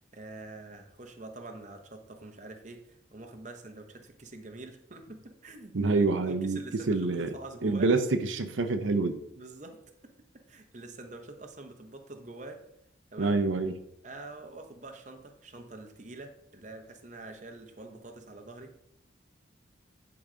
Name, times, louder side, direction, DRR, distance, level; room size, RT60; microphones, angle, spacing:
voice 1, 0.1-7.9 9.3-9.8 10.5-12.6 13.1-13.4 14.0-18.8, right 2 dB, 40° right, 5 dB, 0.9 m, -45 dB
voice 2, 5.7-6.6 6.9-7.3 7.6-9.2 13.2-13.7, right 3 dB, 90° right, 8 dB, 0.7 m, -26 dB
10.5 x 4.0 x 5.0 m, 0.77 s
head